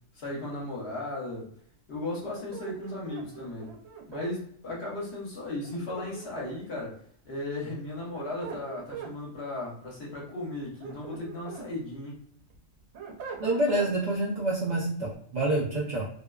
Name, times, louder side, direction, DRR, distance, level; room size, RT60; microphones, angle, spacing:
voice 1, 0.1-1.5 1.9-3.7 4.1-7.0 7.2-12.2, left 2 dB, 60° left, -4 dB, 1.0 m, -36 dB
sound 1, 2.2-4.3 5.6-6.7 7.9-9.1 10.6-11.7 12.1-13.9, right 7 dB, 90° right, 1.0 m, -42 dB
voice 2, 13.4-16.0, right 1 dB, 60° right, -5 dB, 0.4 m, -27 dB
2.5 x 2.2 x 2.2 m, 0.63 s
omnidirectional pair, 1.3 m